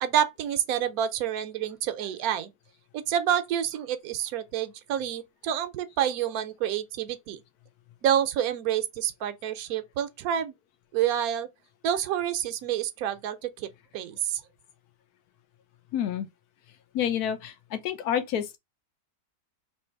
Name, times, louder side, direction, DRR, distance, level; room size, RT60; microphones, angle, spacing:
voice 1, 0.0-2.5 2.9-7.4 8.0-10.5 10.9-11.5 11.8-13.7 13.9-14.4, right 10 dB, 70° right, 1.0 m, -28 dB
voice 2, 15.9-16.3 16.9-18.6, left 9 dB, 70° left, 1.2 m, -29 dB
3.2 x 2.9 x 4.4 m
omnidirectional pair, 1.8 m